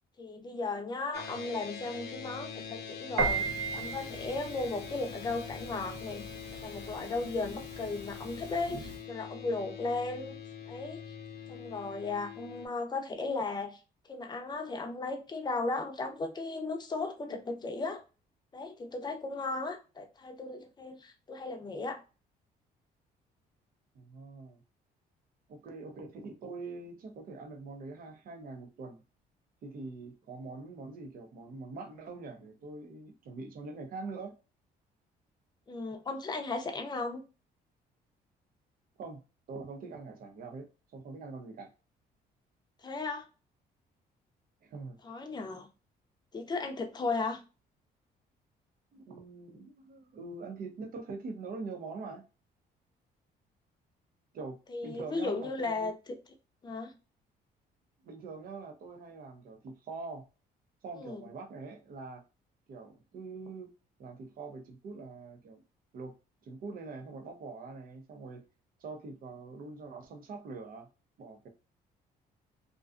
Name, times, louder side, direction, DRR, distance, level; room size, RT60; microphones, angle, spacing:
voice 1, 0.2-6.2 6.5-10.4 10.7-11.1 11.5-13.8 14.1-18.0 18.5-22.0 35.7-37.2 42.8-43.3 45.0-45.7 46.3-47.4 54.7-55.9 56.6-56.9 61.0-61.2, left 3 dB, 25° left, 0.6 m, -36 dB
sound 1, 1.1-12.7, left 7 dB, 75° left, 0.6 m, -44 dB
Piano, 3.2-9.0, right 4 dB, 85° right, 0.9 m, -37 dB
voice 2, 23.9-24.6 25.5-29.0 29.6-34.3 39.0-39.2 39.5-41.7 44.6-45.0 48.9-52.2 54.3-55.9 58.0-60.3 60.8-62.2 62.7-63.7 64.0-65.6 65.9-66.1 66.4-68.4 68.8-70.9 71.2-71.5, right 3 dB, 60° right, 0.7 m, -44 dB
2.5 x 2.3 x 2.4 m
cardioid pair, 105°, 17 cm